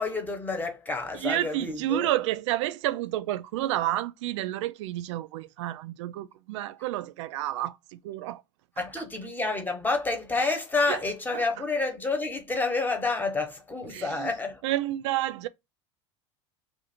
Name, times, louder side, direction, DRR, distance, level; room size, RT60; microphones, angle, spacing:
voice 1, 0.0-2.1 8.8-14.6, left 3 dB, 10° left, 1.0 m, -29 dB
voice 2, 1.1-8.4 10.9-11.0 11.3-11.4 13.9-14.3 14.6-15.5, right 14 dB, 70° right, 0.4 m, -30 dB
2.6 x 2.5 x 4.2 m
hypercardioid pair, 90°, 16 cm